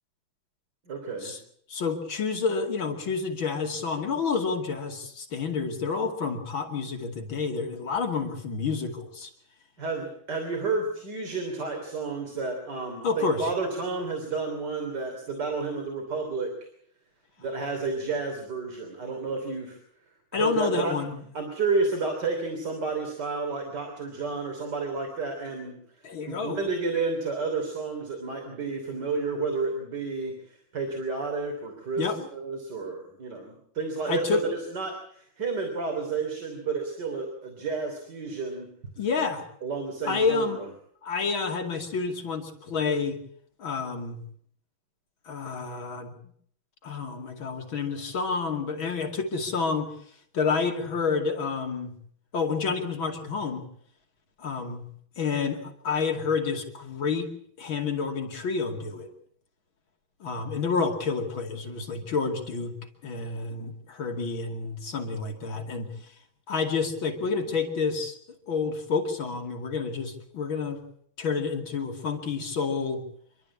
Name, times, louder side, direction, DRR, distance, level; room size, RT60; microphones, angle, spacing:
voice 1, 0.9-1.3 9.8-16.6 17.4-19.8 20.3-20.9 21.3-25.8 26.2-34.4 34.7-38.7 39.6-40.7, right 4 dB, 55° right, 3 dB, 3.8 m, -31 dB
voice 2, 1.7-9.3 13.0-13.5 20.3-21.2 26.0-26.6 32.0-32.2 34.1-34.4 39.0-39.4 40.1-40.6 41.0-43.2 43.6-44.2 45.3-46.1 46.8-49.9 50.3-51.9 52.3-53.6 54.4-54.9 55.2-57.3 57.6-59.1 60.2-62.8 63.0-65.9 66.5-68.1 68.5-70.8 71.2-73.0, left 5 dB, 80° left, 3 dB, 3.3 m, -29 dB
27.5 x 12.5 x 8.6 m, 0.65 s
omnidirectional pair, 2.2 m